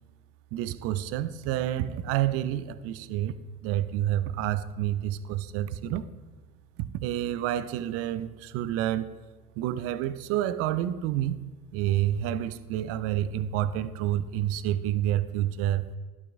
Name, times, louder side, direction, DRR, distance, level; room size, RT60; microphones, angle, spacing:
voice 1, 0.5-3.3 3.6-6.1 6.8-9.1 9.6-11.4 11.7-15.9, right 12 dB, 35° right, 15 dB, 0.4 m, -29 dB
11.5 x 6.0 x 3.6 m, 1.4 s
figure-of-eight pair, 70°, 45 cm